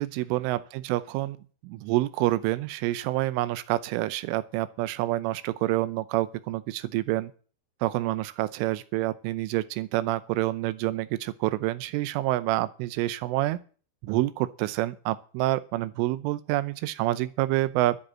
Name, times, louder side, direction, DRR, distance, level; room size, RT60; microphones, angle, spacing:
voice 1, 0.0-1.4 1.6-7.3 7.8-13.6 14.0-18.0, right 16 dB, 90° right, 15 dB, 3.3 m, -27 dB
12.5 x 7.8 x 7.4 m, 0.40 s
omnidirectional pair, 5.6 m